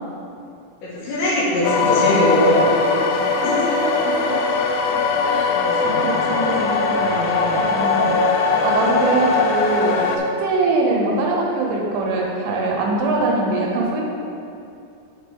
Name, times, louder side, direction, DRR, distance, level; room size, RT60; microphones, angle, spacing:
voice 1, 0.8-2.8 3.1-3.6 5.5-6.1, equal, 70° left, -9 dB, 4.0 m, -21 dB
sound 1, 1.6-10.2, left 4 dB, 90° left, 2.4 m, -20 dB
voice 2, 3.8-4.3 5.2-5.5 5.8-8.2 8.6-10.0 10.4-14.0, right 2 dB, 80° right, -2 dB, 3.0 m, -23 dB
8.9 x 4.0 x 5.2 m, 2.6 s
omnidirectional pair, 5.5 m